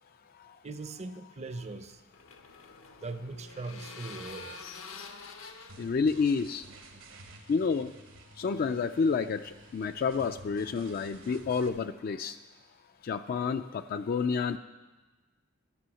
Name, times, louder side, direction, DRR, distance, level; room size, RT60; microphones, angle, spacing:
voice 1, 0.6-2.0 3.0-4.6, right 3 dB, 35° right, 10 dB, 0.6 m, -40 dB
sound 1, 1.6-7.1, left 4 dB, 85° left, 0.9 m, -47 dB
sound 2, 5.7-11.7, right 2 dB, 75° right, 1.3 m, -52 dB
voice 2, 5.8-6.6 7.5-7.9 8.4-12.4 13.0-14.6, left 5 dB, 45° left, 9 dB, 0.3 m, -29 dB
12.5 x 6.2 x 7.6 m, 1.2 s
head